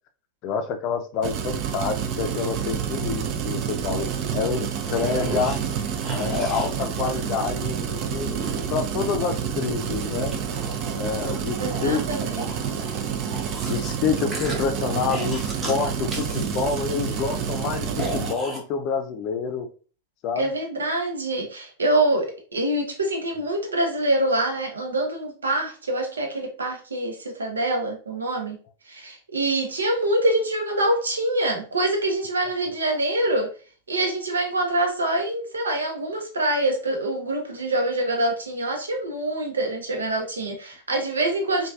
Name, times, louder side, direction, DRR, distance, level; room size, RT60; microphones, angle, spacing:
voice 1, 0.4-4.1 4.3-5.6 6.1-8.3 8.7-10.4 11.0-12.1 12.6-12.8 13.7-19.7 20.2-20.5, left 6 dB, 40° left, 6 dB, 0.4 m, -28 dB
sound 1, 1.2-18.3, right 8 dB, 40° right, 0.4 m, -28 dB
sound 2, 4.7-7.7 8.3-9.2 9.8-13.9 14.3-15.8 16.1-18.6, right 1 dB, 15° right, 0.9 m, -36 dB
voice 2, 11.6-12.6 20.4-28.6 28.9-33.5 33.9-41.7, right 1 dB, 70° right, 2 dB, 0.8 m, -25 dB
3.1 x 2.3 x 2.3 m, 0.37 s
figure-of-eight pair, 90°, 0 cm